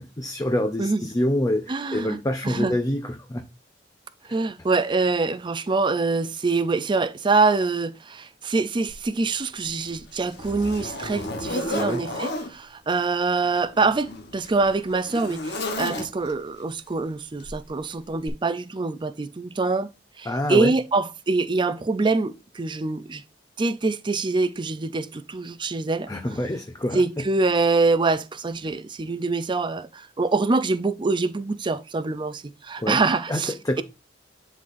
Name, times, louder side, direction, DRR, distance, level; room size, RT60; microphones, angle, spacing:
voice 1, 0.0-3.5 4.3-4.4 11.7-12.0 20.3-20.7 26.1-27.2 32.8-33.0 33.3-33.8, left 1 dB, 20° left, 0.6 m, -26 dB
voice 2, 1.7-2.2 2.4-2.7 4.3-19.9 20.2-23.2 23.6-26.1 26.9-33.8, right 3 dB, 25° right, 0.5 m, -25 dB
Zipper (clothing), 8.9-9.0 9.6-12.5 13.5-16.4 17.4-17.7 18.2-18.3, left 1 dB, 65° left, 1.1 m, -33 dB
10.5 x 4.0 x 2.6 m
head